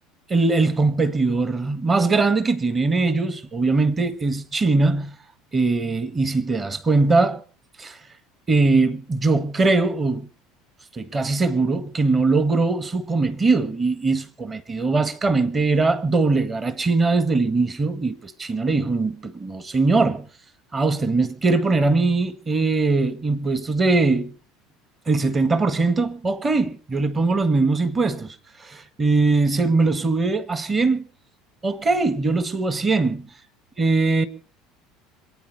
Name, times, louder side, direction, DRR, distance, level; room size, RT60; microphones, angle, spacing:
voice 1, 0.3-5.2 5.5-7.4 7.8-8.0 8.5-10.3 10.9-20.3 20.7-24.3 25.1-31.0 31.6-33.3 33.8-34.3, right 3 dB, 25° right, 1.5 m, -21 dB
27.5 x 9.3 x 5.3 m
figure-of-eight pair, 65°, 0 cm